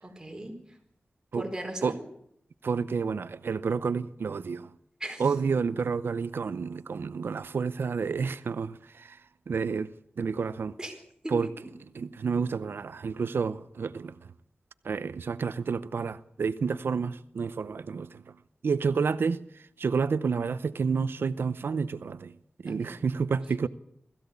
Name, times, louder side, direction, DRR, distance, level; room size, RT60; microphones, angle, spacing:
voice 1, 0.0-0.5 1.3-2.0 5.0-5.2 10.8-10.9 11.2-11.3 22.7-22.9, right 1 dB, 20° right, 4.5 m, -37 dB
voice 2, 2.6-4.7 5.2-9.2 9.5-9.9 10.2-10.7 11.3-11.5 11.9-14.1 14.8-18.2 18.6-19.4 19.8-22.3 22.6-23.7, right 5 dB, 85° right, 0.7 m, -29 dB
21.0 x 15.0 x 8.4 m
wide cardioid pair, 100°, 4 cm